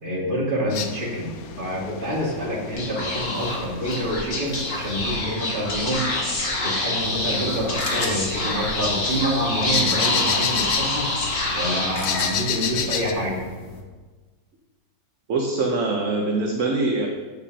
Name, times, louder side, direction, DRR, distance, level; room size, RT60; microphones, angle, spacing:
voice 1, 0.0-6.0 6.6-11.1 11.5-13.4, equal, 30° right, -4 dB, 2.2 m, -27 dB
sound 1, 0.7-13.1, left 7 dB, 65° left, 1.0 m, -32 dB
Speech / Whispering, 2.7-12.5, left 2 dB, 85° left, 2.7 m, -27 dB
sound 2, 7.0-13.8, left 2 dB, 45° left, 1.4 m, -37 dB
voice 2, 15.3-17.1, right 3 dB, 50° right, 1 dB, 1.1 m, -23 dB
13.5 x 8.3 x 2.9 m, 1.4 s
omnidirectional pair, 1.9 m